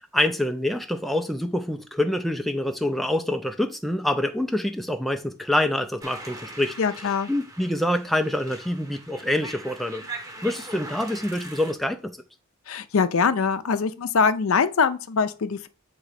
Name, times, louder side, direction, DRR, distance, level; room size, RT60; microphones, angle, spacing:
voice 1, 0.0-6.7 7.3-10.0 10.4-12.1, left 1 dB, ahead, 0.4 m, -26 dB
sound 1, 6.0-11.7, right 2 dB, 15° right, 0.8 m, -41 dB
voice 2, 6.8-7.3 12.7-15.7, left 5 dB, 70° left, 0.5 m, -23 dB
7.5 x 3.0 x 4.8 m
head